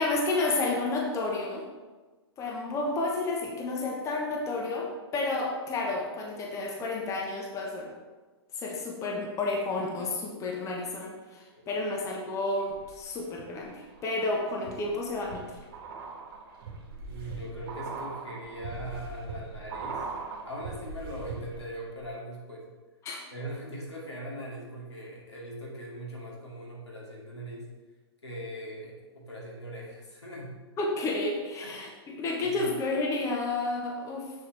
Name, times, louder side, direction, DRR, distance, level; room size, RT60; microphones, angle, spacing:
voice 1, 0.0-1.6 2.4-7.9 8.6-15.5 23.0-23.2 30.8-34.3, left 2 dB, 20° left, 0 dB, 1.2 m, -31 dB
voice 2, 11.6-11.9 17.1-20.1 20.5-22.7 23.3-27.7 28.2-30.5 31.6-31.7 32.4-32.7, right 1 dB, 90° left, -4 dB, 2.4 m, -40 dB
sound 1, 12.7-13.4 13.9-21.8 22.0-22.1, right 4 dB, 50° right, 1.7 m, -40 dB
7.4 x 6.7 x 3.3 m, 1.3 s
figure-of-eight pair, 115°, 14 cm